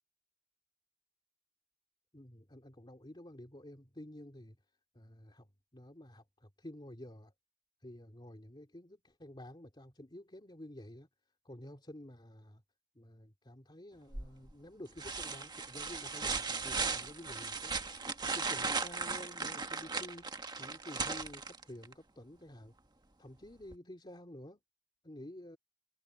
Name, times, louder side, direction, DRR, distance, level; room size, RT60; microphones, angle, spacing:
voice 1, 2.1-4.6 4.9-7.3 7.8-11.1 11.4-12.6 12.9-17.7 18.3-20.3 20.6-22.7 23.2-24.6 25.0-25.6, left 1 dB, 25° left, 2.7 m, -51 dB
sound 1, 14.1-14.5 15.0-21.9 23.7-23.8, right 4 dB, 20° right, 1.5 m, -37 dB
head